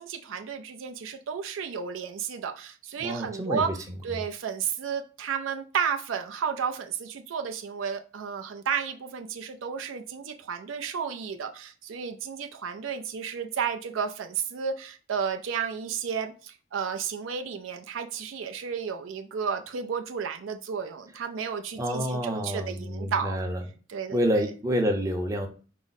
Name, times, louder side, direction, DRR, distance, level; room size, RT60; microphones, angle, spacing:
voice 1, 0.0-3.7 4.0-23.4 23.9-24.2, right 6 dB, 70° right, 6 dB, 0.4 m, -32 dB
voice 2, 3.0-4.2 21.8-23.6 24.1-25.5, equal, 15° right, 3 dB, 0.6 m, -28 dB
4.7 x 2.0 x 4.0 m, 0.37 s
head